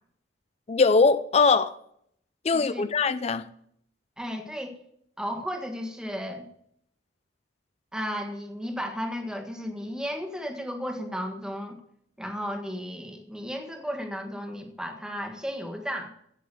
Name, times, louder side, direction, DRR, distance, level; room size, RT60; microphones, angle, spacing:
voice 1, 0.7-1.7 2.4-3.5, left 4 dB, 35° left, 0.5 m, -21 dB
voice 2, 2.5-2.9 4.2-4.8 5.2-6.4 7.9-11.8 12.2-16.1, equal, 5° right, 1.6 m, -34 dB
16.5 x 6.3 x 6.9 m
head